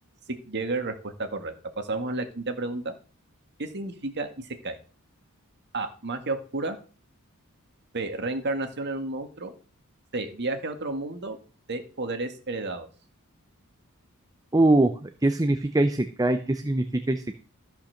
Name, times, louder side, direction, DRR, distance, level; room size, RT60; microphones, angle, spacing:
voice 1, 0.5-3.0 3.6-4.8 5.7-6.8 7.9-9.5 10.1-11.4 11.7-12.9, right 2 dB, 50° right, 6 dB, 2.1 m, -31 dB
voice 2, 14.5-17.4, right 2 dB, 15° right, 8 dB, 0.7 m, -23 dB
14.0 x 5.9 x 6.6 m, 0.37 s
head